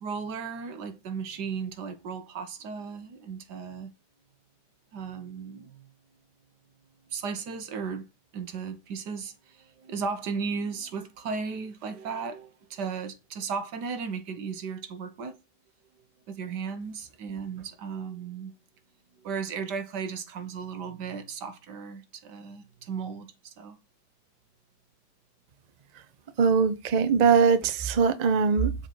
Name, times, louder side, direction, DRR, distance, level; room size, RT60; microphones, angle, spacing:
voice 1, 0.0-3.9 4.9-5.9 7.1-8.1 8.3-15.4 16.3-18.5 19.2-23.8, right 5 dB, 80° right, 1.7 m, -35 dB
voice 2, 26.4-28.7, right 6 dB, 50° right, 0.4 m, -21 dB
7.3 x 4.4 x 5.9 m
omnidirectional pair, 1.8 m